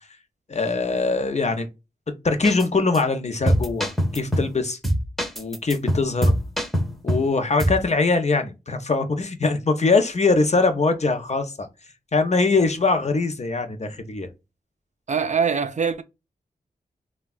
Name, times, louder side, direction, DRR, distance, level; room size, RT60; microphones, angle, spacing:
voice 1, 0.5-1.7 2.2-4.8 5.4-6.3 7.0-11.7 12.1-14.3, left 3 dB, 40° left, 0.6 m, -22 dB
sound 1, 2.4-2.7 2.9-3.0 3.5-4.5 4.8-7.3 7.6-7.8, equal, ahead, 0.7 m, -23 dB
voice 2, 15.1-16.0, right 6 dB, 45° right, 0.4 m, -23 dB
3.4 x 2.2 x 2.2 m
cardioid pair, 45°, 17 cm